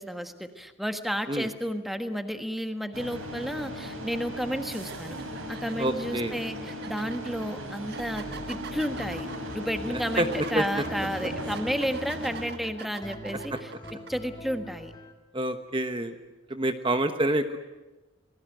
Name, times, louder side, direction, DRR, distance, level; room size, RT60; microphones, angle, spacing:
voice 1, 0.0-5.2 5.5-9.3 9.5-13.7 14.1-14.9, equal, ahead, 7 dB, 1.4 m, -32 dB
sound 1, 2.9-12.5, equal, 85° right, 6.9 m, -37 dB
sound 2, 4.1-4.3 4.8-14.1, right 5 dB, 50° right, 1.4 m, -44 dB
voice 2, 5.8-6.4 10.2-10.6 15.3-16.1 16.5-17.6, right 1 dB, 25° right, 8 dB, 1.2 m, -27 dB
sound 3, 8.9-15.1, equal, 20° left, 2.4 m, -44 dB
29.0 x 20.0 x 9.2 m, 1.1 s
head